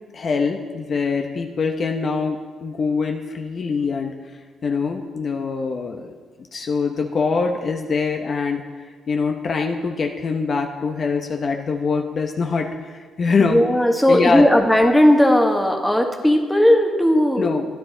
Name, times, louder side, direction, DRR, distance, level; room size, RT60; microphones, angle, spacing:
voice 1, 0.1-4.1 4.6-6.1 6.5-8.6 9.1-13.6 14.1-14.5 17.4-17.7, left 4 dB, 50° left, 3 dB, 0.9 m, -23 dB
voice 2, 13.4-17.5, left 1 dB, 5° left, 2 dB, 1.2 m, -16 dB
13.0 x 10.0 x 3.9 m, 1.5 s
cardioid pair, 90°, 0 cm